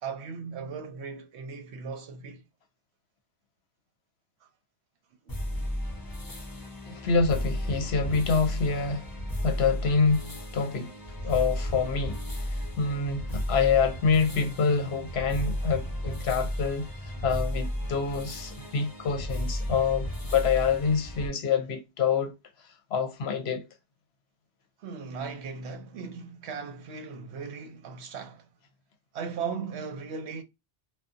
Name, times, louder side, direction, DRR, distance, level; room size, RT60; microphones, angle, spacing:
voice 1, 0.0-2.4 4.4-4.5 5.2-5.3 24.8-28.5 29.1-30.4, right 5 dB, 70° right, 0.9 m, -37 dB
sound 1, 5.3-21.3, equal, 30° left, 0.4 m, -34 dB
voice 2, 6.9-9.1 9.4-10.9 11.2-12.2 12.5-16.9 17.2-22.4 22.9-23.7, left 5 dB, 65° left, 0.9 m, -26 dB
2.6 x 2.2 x 2.4 m
omnidirectional pair, 1.2 m